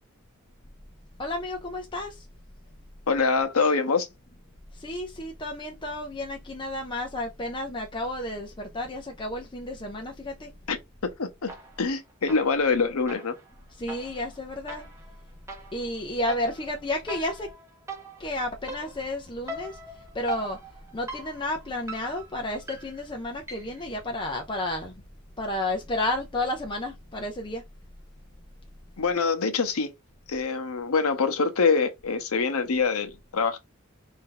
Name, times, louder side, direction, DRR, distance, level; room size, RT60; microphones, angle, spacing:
voice 1, 1.2-2.2 4.7-10.5 13.7-14.8 15.7-17.5 18.2-19.8 20.1-20.6 20.9-25.0 25.4-27.6, left 1 dB, 25° left, 0.6 m, -31 dB
voice 2, 3.1-4.1 10.7-10.8 11.2-11.5 11.8-13.4 29.0-29.9 30.3-33.6, left 4 dB, 85° left, 0.8 m, -24 dB
sound 1, 11.5-11.9 12.3-23.9, right 2 dB, 15° right, 1.1 m, -42 dB
4.5 x 2.7 x 3.8 m
head